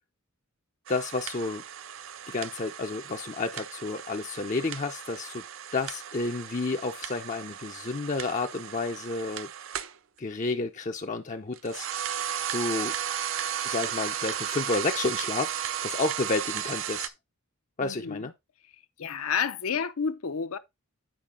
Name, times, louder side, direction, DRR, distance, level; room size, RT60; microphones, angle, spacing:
voice 1, 0.9-1.6 2.3-5.4 5.7-9.5 10.2-11.9 12.5-12.9 13.6-15.5 15.8-17.1 17.8-18.3, left 3 dB, 35° left, 0.5 m, -31 dB
sound 1, 0.9-10.0 11.5-17.1, right 9 dB, 65° right, 0.5 m, -35 dB
voice 2, 17.8-18.3 19.0-20.6, left 6 dB, 80° left, 0.7 m, -30 dB
9.1 x 4.4 x 3.7 m
head